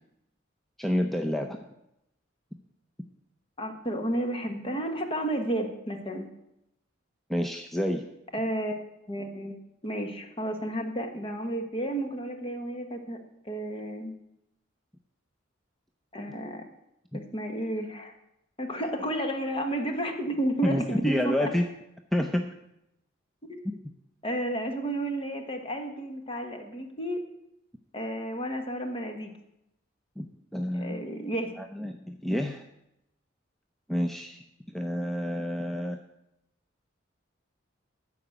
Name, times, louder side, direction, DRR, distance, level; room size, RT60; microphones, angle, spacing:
voice 1, 0.8-1.6 7.3-8.0 17.1-17.2 20.6-21.7 22.1-22.5 23.6-23.8 30.2-30.3 30.5-31.1 31.6-32.6 33.9-36.0, equal, ahead, 3 dB, 0.5 m, -29 dB
voice 2, 3.6-6.3 8.3-9.6 9.8-13.2 13.4-14.1 16.1-16.6 17.1-18.1 18.6-21.5 23.4-23.6 24.2-27.2 27.9-29.4 30.7-31.5, right 1 dB, 30° left, 5 dB, 1.3 m, -32 dB
14.0 x 4.9 x 7.9 m, 0.86 s
head